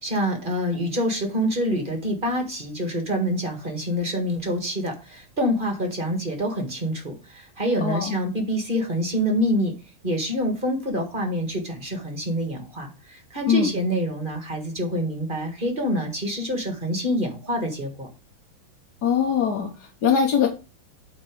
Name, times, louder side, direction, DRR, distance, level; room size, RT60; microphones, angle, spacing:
voice 1, 0.0-9.7 10.0-18.1, equal, 25° right, 3 dB, 1.6 m, -26 dB
voice 2, 7.8-8.1 13.5-13.7 19.0-20.5, left 7 dB, 55° left, 1 dB, 1.4 m, -22 dB
8.8 x 4.0 x 4.7 m, 0.31 s
omnidirectional pair, 2.4 m